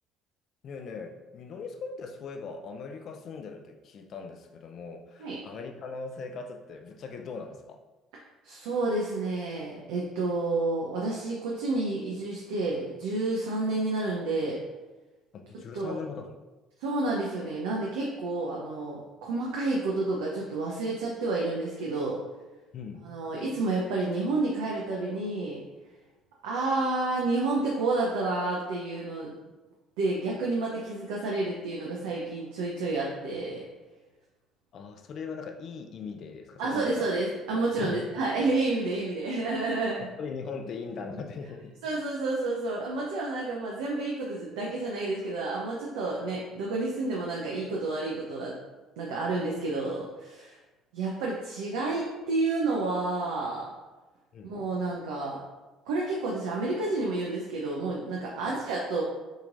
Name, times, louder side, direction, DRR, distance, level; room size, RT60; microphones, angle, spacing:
voice 1, 0.6-7.8 15.3-16.3 22.7-23.1 34.7-37.1 37.8-38.0 40.2-41.8 54.3-54.5 58.5-58.6, left 5 dB, 55° left, 5 dB, 0.5 m, -40 dB
voice 2, 8.4-14.6 15.7-16.0 16.8-22.2 23.0-25.6 26.4-29.3 30.0-33.6 36.6-40.1 41.8-48.6 49.0-50.6 50.9-53.7 54.4-55.4 55.9-59.0, right 2 dB, 80° right, -3 dB, 0.6 m, -30 dB
6.5 x 3.0 x 2.5 m, 1.2 s
hypercardioid pair, 60°, 0 cm